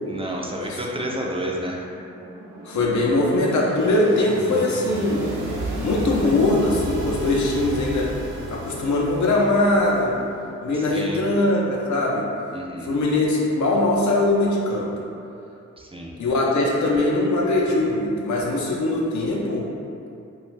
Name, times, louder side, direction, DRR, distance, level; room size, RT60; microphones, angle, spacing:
voice 1, 0.1-1.9 10.7-11.2 12.5-12.9 15.8-16.2, right 1 dB, 20° right, -2 dB, 0.4 m, -30 dB
sound 1, 1.9-10.4, right 2 dB, 80° right, 0.5 m, -33 dB
voice 2, 2.6-5.3 5.8-8.1 8.5-10.2 10.6-12.3 12.8-14.9 16.2-19.7, left 2 dB, 75° left, -3 dB, 0.5 m, -21 dB
2.4 x 2.3 x 3.1 m, 2.6 s
cardioid pair, 45°, 29 cm